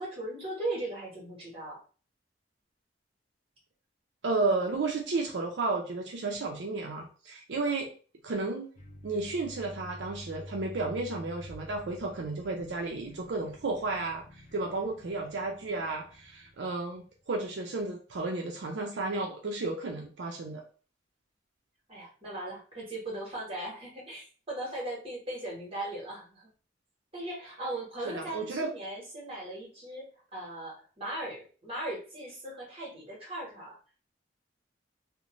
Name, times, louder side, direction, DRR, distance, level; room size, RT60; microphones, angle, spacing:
voice 1, 0.0-1.8 21.9-26.5 27.1-33.8, right 1 dB, 30° right, -3 dB, 1.2 m, -38 dB
voice 2, 4.2-7.9 8.2-8.7 9.0-20.6 28.1-28.7, right 3 dB, 75° right, 0 dB, 0.5 m, -33 dB
sound 1, 8.7-17.1, equal, 40° left, 0.5 m, -49 dB
2.6 x 2.1 x 2.9 m, 0.38 s
head